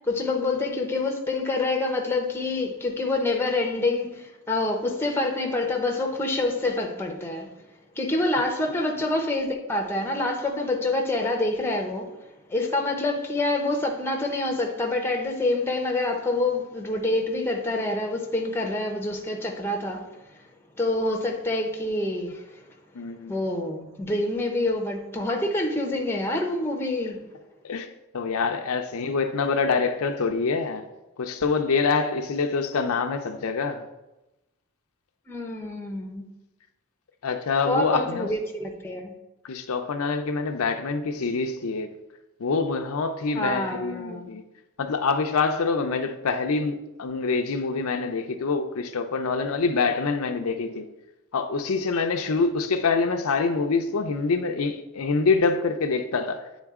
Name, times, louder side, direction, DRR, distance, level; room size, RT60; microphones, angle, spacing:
voice 1, 0.1-7.5 8.0-12.1 12.5-20.1 20.8-22.4 23.3-27.2 35.3-36.4 37.7-39.1 43.3-44.3, left 2 dB, 10° left, 0.7 m, -27 dB
voice 2, 22.9-23.3 27.6-27.9 28.1-30.9 31.2-33.8 37.2-38.3 39.4-41.9 42.4-44.4 44.8-50.9 51.3-56.5, left 4 dB, 75° left, 0.5 m, -25 dB
8.9 x 3.8 x 3.6 m
head